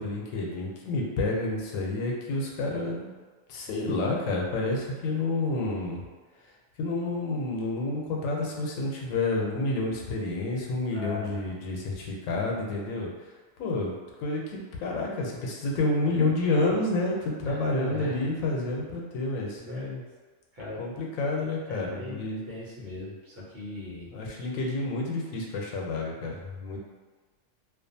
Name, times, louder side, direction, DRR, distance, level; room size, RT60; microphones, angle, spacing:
voice 1, 0.0-3.1 3.5-6.0 6.8-13.1 13.6-13.9 14.2-19.6 20.8-22.4 24.1-26.8, left 2 dB, 85° left, -1 dB, 1.0 m, -29 dB
voice 2, 10.9-11.5 17.4-18.3 19.6-20.0 20.5-20.8 21.7-22.2 22.5-24.1, left 2 dB, 70° right, -8 dB, 1.2 m, -38 dB
2.4 x 2.4 x 2.6 m, 1.4 s
omnidirectional pair, 1.4 m